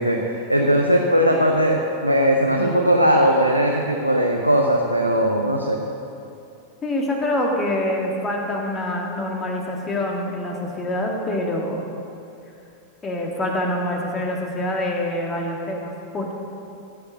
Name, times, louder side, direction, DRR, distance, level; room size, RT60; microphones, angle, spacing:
voice 1, 0.0-5.8, equal, 90° right, 0 dB, 0.8 m, -19 dB
voice 2, 6.8-11.8 13.0-16.3, left 1 dB, 20° left, 0 dB, 2.1 m, -25 dB
15.5 x 7.0 x 6.2 m, 2.6 s
figure-of-eight pair, 90°, 0 cm